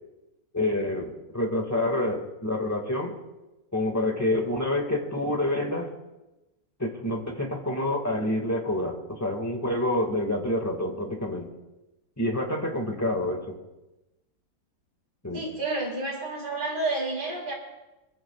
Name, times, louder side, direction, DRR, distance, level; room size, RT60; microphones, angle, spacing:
voice 1, 0.5-3.1 3.7-5.9 6.8-11.5 12.2-13.6 15.2-15.4, left 1 dB, 10° left, 2 dB, 1.7 m, -27 dB
voice 2, 15.3-17.5, right 2 dB, 65° right, -5 dB, 4.5 m, -30 dB
23.5 x 15.5 x 2.4 m, 1.0 s
omnidirectional pair, 2.1 m